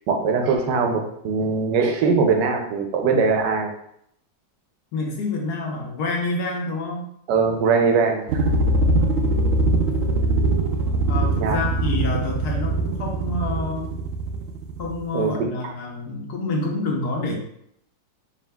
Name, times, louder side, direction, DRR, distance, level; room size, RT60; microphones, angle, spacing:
voice 1, 0.1-3.7 7.3-8.4 11.4-11.6 15.1-15.3, right 5 dB, 90° right, 4 dB, 1.3 m, -21 dB
voice 2, 4.9-7.1 11.1-13.9 14.8-17.4, left 2 dB, 70° left, -1 dB, 1.3 m, -28 dB
sound 1, 8.3-15.0, right 2 dB, 70° right, 0.8 m, -22 dB
4.8 x 3.3 x 2.2 m, 0.72 s
omnidirectional pair, 1.8 m